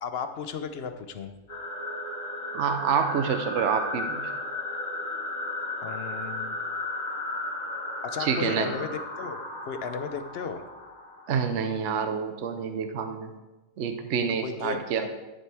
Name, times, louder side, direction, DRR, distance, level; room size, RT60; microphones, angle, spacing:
voice 1, 0.0-1.3 5.8-6.6 8.0-10.6 14.4-15.2, left 6 dB, 55° left, 9 dB, 0.8 m, -35 dB
sound 1, 1.5-11.8, left 2 dB, 85° left, 2.6 m, -35 dB
voice 2, 2.5-4.3 8.2-8.7 11.3-13.3 13.8-15.1, right 6 dB, 65° right, 6 dB, 1.0 m, -27 dB
11.5 x 7.6 x 3.4 m, 1.1 s
omnidirectional pair, 1.4 m